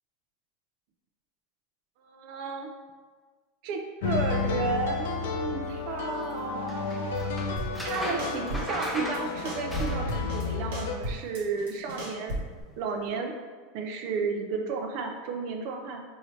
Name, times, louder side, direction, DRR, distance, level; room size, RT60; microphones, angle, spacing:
voice 1, 2.0-2.7 3.6-7.3 7.8-12.4 12.8-13.3 13.7-16.0, right 4 dB, 60° right, 3 dB, 0.6 m, -33 dB
sound 1, 4.0-11.0, left 5 dB, 75° left, 0.5 m, -32 dB
sound 2, 6.7-10.4 12.6-12.8, equal, ahead, 0.6 m, -36 dB
sound 3, 7.6-7.9 8.2-8.9 9.1-10.4 10.7-12.6, right 1 dB, 75° right, 1.3 m, -35 dB
4.6 x 2.7 x 3.1 m, 1.5 s
supercardioid pair, 120°, 0 cm